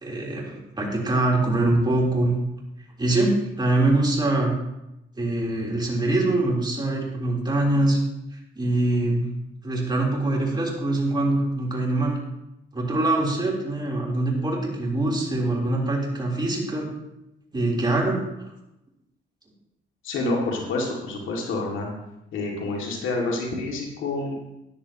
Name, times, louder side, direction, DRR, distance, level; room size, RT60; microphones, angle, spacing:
voice 1, 0.0-2.3 3.0-4.5 5.2-8.0 8.6-9.3 9.6-12.2 12.7-16.9 17.5-18.5, right 2 dB, 20° right, -3 dB, 3.6 m, -23 dB
voice 2, 20.0-21.9 22.3-24.4, left 2 dB, 80° left, -1 dB, 2.3 m, -28 dB
13.5 x 10.5 x 3.0 m, 0.90 s
cardioid pair, 90°, 20 cm